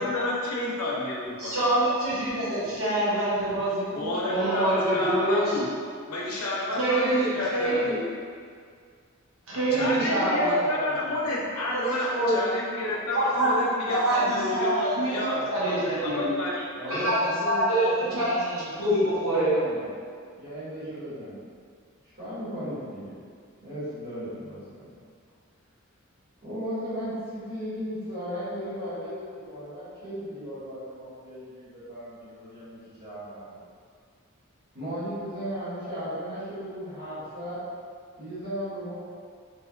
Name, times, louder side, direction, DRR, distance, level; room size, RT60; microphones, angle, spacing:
voice 1, 0.0-1.7 3.9-5.7 6.1-7.9 9.7-16.6 16.9-17.1, left 1 dB, 85° left, -4 dB, 0.6 m, -30 dB
voice 2, 1.4-5.6 6.7-7.9 9.5-10.5 11.7-11.8 12.1-12.3 13.1-13.5 13.9-14.7 15.0-16.3 16.9-17.2 17.4-19.6, right 1 dB, 70° right, -8 dB, 0.9 m, -25 dB
voice 3, 9.5-11.4 16.7-19.0 19.2-19.9 20.4-21.4 22.2-23.2 23.6-24.9 26.4-33.6 34.7-37.6 38.2-38.9, equal, 50° right, -13 dB, 1.4 m, -36 dB
3.3 x 2.2 x 2.3 m, 2.1 s
head